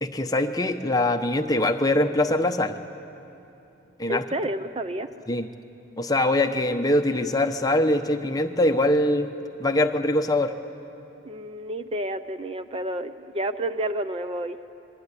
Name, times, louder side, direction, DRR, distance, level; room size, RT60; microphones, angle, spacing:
voice 1, 0.0-2.8 4.0-4.2 5.3-5.5 6.0-9.3 9.6-10.5, left 1 dB, 20° left, 6 dB, 1.0 m, -23 dB
voice 2, 4.1-5.1 11.2-14.6, right 1 dB, 30° right, 10 dB, 0.6 m, -30 dB
27.0 x 21.5 x 9.8 m, 2.9 s
head